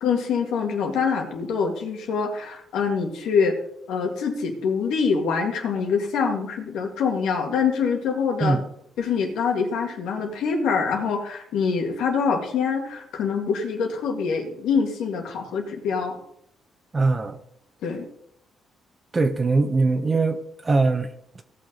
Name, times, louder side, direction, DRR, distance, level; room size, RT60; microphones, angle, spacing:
voice 1, 0.0-3.6 3.9-8.6 9.0-16.2 17.8-18.1, left 5 dB, 85° left, 2 dB, 2.2 m, -25 dB
voice 2, 16.9-17.4 19.1-21.1, right 3 dB, 30° right, 8 dB, 1.2 m, -21 dB
17.5 x 6.3 x 3.9 m, 0.72 s
cardioid pair, 90°, 0 cm